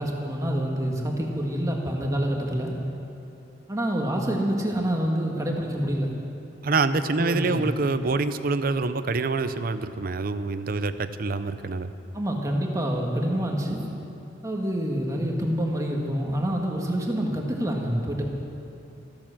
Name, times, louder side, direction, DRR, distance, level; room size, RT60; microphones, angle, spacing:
voice 1, 0.0-2.7 3.7-6.1 7.2-7.6 12.1-13.9 14.4-18.2, equal, 20° right, 0 dB, 1.5 m, -27 dB
voice 2, 6.6-11.9, right 3 dB, 50° right, 11 dB, 0.6 m, -26 dB
14.0 x 12.0 x 7.4 m, 2.8 s
head